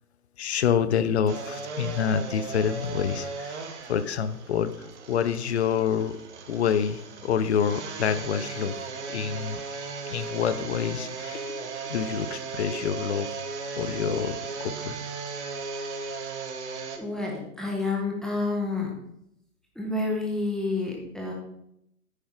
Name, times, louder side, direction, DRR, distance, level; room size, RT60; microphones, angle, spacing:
voice 1, 0.4-3.6 3.9-6.2 6.5-8.7 9.1-9.6 10.0-13.3 13.8-15.0, left 7 dB, 45° left, 12 dB, 0.8 m, -27 dB
sound 1, 1.3-17.0, right 4 dB, 45° right, 1.5 m, -36 dB
voice 2, 17.0-18.9 19.7-21.3, left 3 dB, ahead, -2 dB, 1.2 m, -29 dB
10.0 x 8.5 x 3.7 m, 0.76 s
figure-of-eight pair, 130°, 46 cm